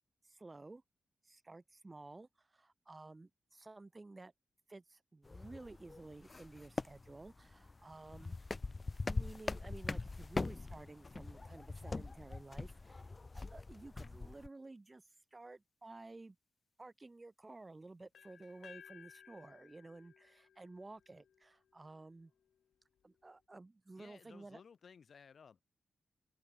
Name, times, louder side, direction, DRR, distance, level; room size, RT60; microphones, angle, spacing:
voice 1, 0.2-0.8 1.2-4.3 4.7-8.5 9.0-15.0 15.3-16.4 16.8-22.3 23.0-24.6, right 2 dB, 20° right, 0.7 m, -53 dB
Backyard Wooden Stairs, 5.2-14.5, left 3 dB, 25° left, 0.4 m, -43 dB
sound 1, 18.1-22.0, left 8 dB, 80° left, 0.7 m, -60 dB
voice 2, 24.0-25.6, left 6 dB, 50° left, 1.1 m, -58 dB
wide cardioid pair, 160°, 0 cm